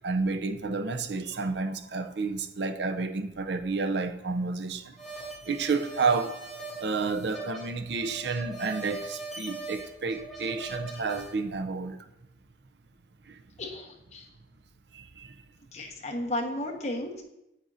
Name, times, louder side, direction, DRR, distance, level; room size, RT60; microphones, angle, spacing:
voice 1, 0.0-5.0 5.4-6.4 6.8-12.0 13.3-13.4 14.9-15.3, right 4 dB, 80° right, 0.6 m, -30 dB
sound 1, 5.0-11.3, right 2 dB, ahead, 2.4 m, -41 dB
voice 2, 13.6-14.3 15.7-17.2, left 1 dB, 40° left, 1.3 m, -34 dB
9.0 x 8.7 x 2.7 m
head